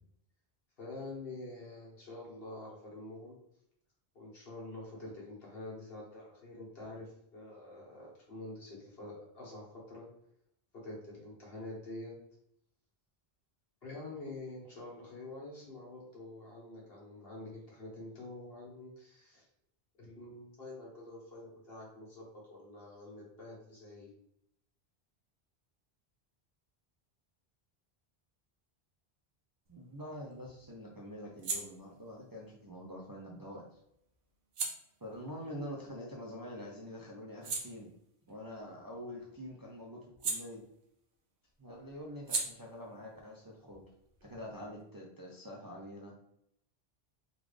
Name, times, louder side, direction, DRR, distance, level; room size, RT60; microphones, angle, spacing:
voice 1, 0.8-3.4 4.1-10.1 10.8-12.1 13.8-19.4 20.0-24.1, left 2 dB, 65° left, -4 dB, 1.4 m, -47 dB
voice 2, 29.7-33.8 35.0-37.9 38.3-40.6 41.6-43.8 44.2-46.1, equal, 30° right, -4 dB, 0.4 m, -46 dB
sound 1, 29.7-36.5 36.9-41.2 41.4-44.8, right 4 dB, 80° right, 1.0 m, -43 dB
3.7 x 2.4 x 3.2 m, 0.75 s
omnidirectional pair, 1.1 m